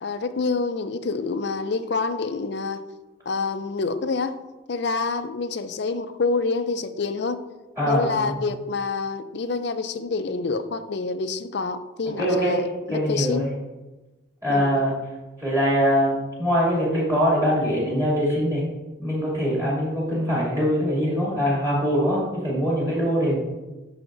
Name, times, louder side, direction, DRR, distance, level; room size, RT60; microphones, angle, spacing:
voice 1, 0.0-2.8 3.3-4.4 4.7-7.4 7.9-13.6 14.5-14.7, left 4 dB, 55° left, 10 dB, 0.5 m, -27 dB
voice 2, 7.8-8.3 12.2-12.6 12.9-13.5 14.4-14.9 15.4-18.6 19.0-23.4, equal, 15° right, -6 dB, 2.4 m, -23 dB
12.0 x 5.8 x 2.6 m, 1.1 s
head